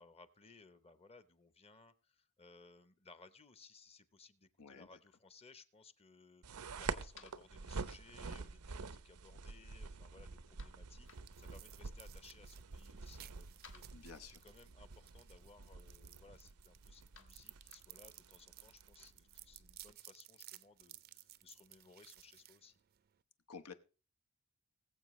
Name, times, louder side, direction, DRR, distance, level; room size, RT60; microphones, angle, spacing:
voice 1, 0.0-11.1 11.4-22.8, left 4 dB, 25° left, 13 dB, 0.8 m, -62 dB
voice 2, 4.6-5.0 13.9-14.4 23.5-23.7, left 5 dB, 90° left, 8 dB, 1.0 m, -52 dB
sound 1, 6.4-19.9, right 4 dB, 90° right, 0.7 m, -48 dB
sound 2, 6.5-18.5, left 6 dB, 60° left, 1.4 m, -68 dB
sound 3, 10.5-23.2, right 14 dB, 45° right, 0.5 m, -59 dB
20.5 x 7.4 x 3.1 m, 0.36 s
head